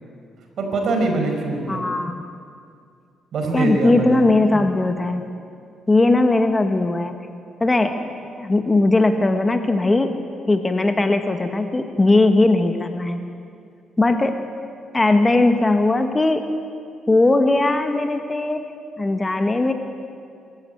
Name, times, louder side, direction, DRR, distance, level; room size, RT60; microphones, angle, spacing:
voice 1, 0.6-1.8 3.3-4.3, right 2 dB, 60° right, 3 dB, 5.5 m, -23 dB
voice 2, 1.7-2.2 3.5-5.3 5.9-7.2 7.6-8.1 8.4-10.1 10.5-13.2 14.0-14.4 14.9-16.4 17.1-18.6 19.0-19.7, left 2 dB, 20° left, 6 dB, 1.6 m, -19 dB
24.5 x 14.5 x 9.4 m, 2.3 s
cardioid pair, 90°, 0 cm